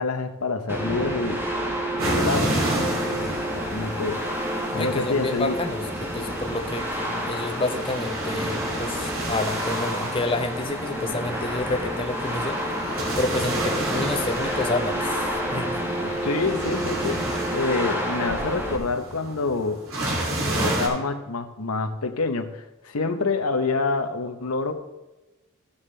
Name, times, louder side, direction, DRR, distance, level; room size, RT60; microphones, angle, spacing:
voice 1, 0.0-1.4 2.0-3.4 3.7-4.3 4.7-5.6 16.2-19.8 20.6-24.7, left 3 dB, 90° left, 7 dB, 0.9 m, -27 dB
sound 1, 0.7-18.8, equal, 10° right, 1.3 m, -29 dB
sound 2, 2.0-20.9, right 1 dB, 70° right, 2.8 m, -31 dB
voice 2, 4.7-12.6 13.2-15.8, left 2 dB, 25° left, 5 dB, 0.6 m, -29 dB
14.5 x 7.2 x 3.3 m, 1.0 s
head